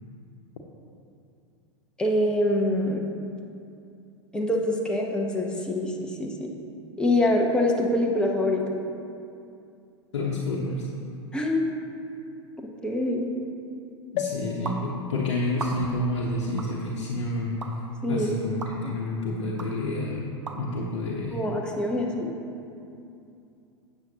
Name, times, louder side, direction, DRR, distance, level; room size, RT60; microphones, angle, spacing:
voice 1, 2.0-3.0 4.3-6.5 7.0-8.6 11.3-11.6 12.8-13.3 18.0-18.3 21.3-22.3, left 1 dB, 5° left, -1 dB, 1.0 m, -25 dB
voice 2, 10.1-10.9 14.1-20.3 20.6-21.4, left 2 dB, 65° left, -3 dB, 1.0 m, -29 dB
sound 1, 14.2-17.8 18.4-18.5 18.7-18.8, left 8 dB, 40° left, 0.6 m, -38 dB
sound 2, 14.7-14.8 15.5-16.0 16.6-16.7 17.6-17.7 18.6-18.7 19.6-19.7 20.5-20.6, right 3 dB, 80° right, 0.8 m, -35 dB
12.0 x 8.1 x 2.9 m, 2.6 s
figure-of-eight pair, 90°, 15 cm